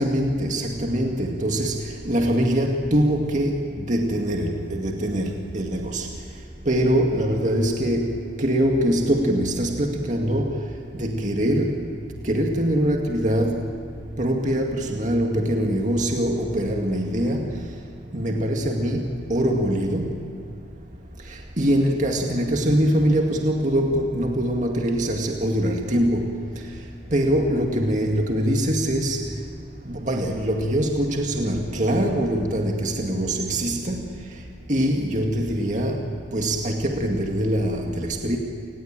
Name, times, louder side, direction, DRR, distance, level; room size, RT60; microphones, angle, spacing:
voice 1, 0.0-6.1 6.7-10.6 10.9-11.9 12.2-13.6 14.2-17.5 18.1-20.2 21.3-26.3 27.1-29.2 29.9-34.1 34.7-38.4, equal, 40° right, 1 dB, 2.1 m, -23 dB
28.5 x 19.0 x 8.9 m, 2.5 s
head